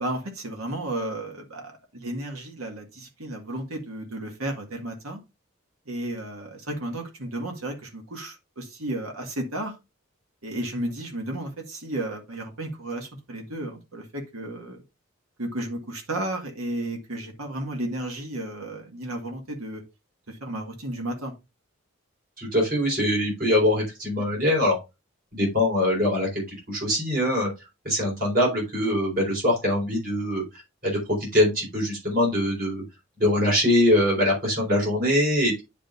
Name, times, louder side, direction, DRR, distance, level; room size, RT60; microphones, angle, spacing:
voice 1, 0.0-5.2 5.9-9.8 10.4-14.8 15.4-19.8 20.3-21.3, right 1 dB, 85° right, 1.8 m, -33 dB
voice 2, 22.4-24.8 25.3-27.5 27.8-30.4 30.8-31.0 31.3-32.8 33.2-35.6, left 1 dB, 40° right, 4.3 m, -23 dB
10.0 x 5.1 x 2.5 m
head